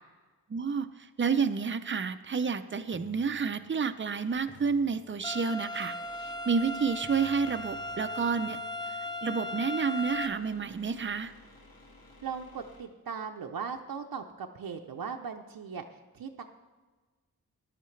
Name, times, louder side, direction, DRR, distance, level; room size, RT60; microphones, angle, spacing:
voice 1, 0.5-0.9 1.2-5.9 6.5-8.6 9.2-11.3, right 5 dB, 35° right, 11 dB, 0.5 m, -29 dB
sound 1, 2.9-4.1 4.5-5.7 7.0-10.9, right 2 dB, 45° left, 4.2 m, -57 dB
sound 2, 4.3-13.5, left 2 dB, 85° left, 1.8 m, -57 dB
sound 3, 5.2-10.3, left 1 dB, 10° left, 0.5 m, -37 dB
voice 2, 12.2-15.8 16.1-16.4, right 6 dB, 75° right, 3 dB, 0.7 m, -38 dB
15.0 x 11.0 x 3.2 m, 1.3 s
wide cardioid pair, 115°, 36 cm